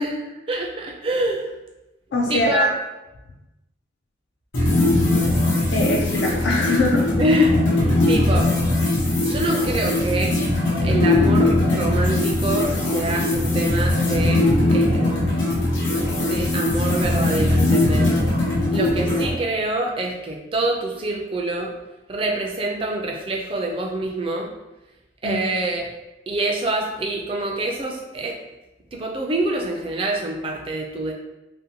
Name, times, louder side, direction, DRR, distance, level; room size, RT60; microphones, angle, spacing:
voice 1, 0.0-1.5 2.3-2.7 7.2-8.5 9.2-10.3 10.8-15.4 16.0-18.1 18.7-21.7 22.1-24.5 25.2-25.9 26.3-28.3 28.9-31.1, right 1 dB, 30° right, 1 dB, 0.3 m, -26 dB
voice 2, 2.1-2.7 5.7-7.1 25.2-25.4, left 2 dB, 65° left, -1 dB, 0.3 m, -21 dB
sound 1, 4.5-19.3, left 1 dB, 90° left, 0.7 m, -20 dB
2.6 x 2.1 x 2.7 m, 1.0 s
head